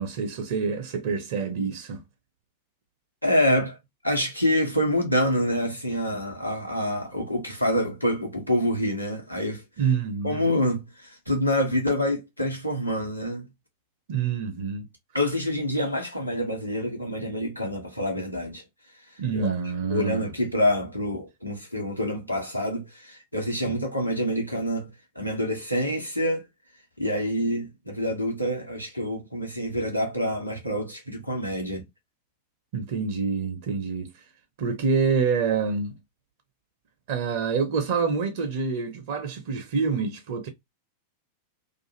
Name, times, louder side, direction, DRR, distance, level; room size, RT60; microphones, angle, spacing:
voice 1, 0.0-2.0 9.8-10.5 14.1-14.8 19.2-20.3 32.7-34.1 34.6-35.9 37.1-40.5, right 5 dB, 55° right, 0.6 m, -27 dB
voice 2, 3.2-3.8 4.0-9.6 10.2-13.5 15.1-18.6 19.3-19.5 19.9-24.9 25.1-26.5 27.0-31.8, equal, 90° left, 1.0 m, -26 dB
2.5 x 2.4 x 2.8 m
figure-of-eight pair, 90°, 0 cm